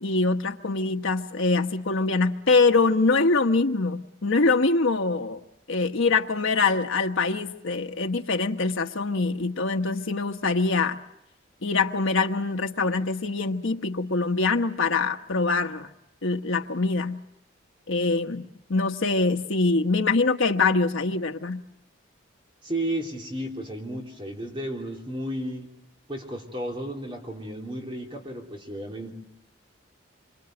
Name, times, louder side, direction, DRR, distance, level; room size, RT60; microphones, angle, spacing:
voice 1, 0.0-5.4 5.7-11.0 11.6-15.9 16.2-17.2 17.9-21.6, left 3 dB, 80° left, 5 dB, 1.1 m, -24 dB
voice 2, 22.6-25.7 26.1-29.1, right 1 dB, 25° right, 0 dB, 3.3 m, -33 dB
27.0 x 25.5 x 7.7 m, 0.87 s
head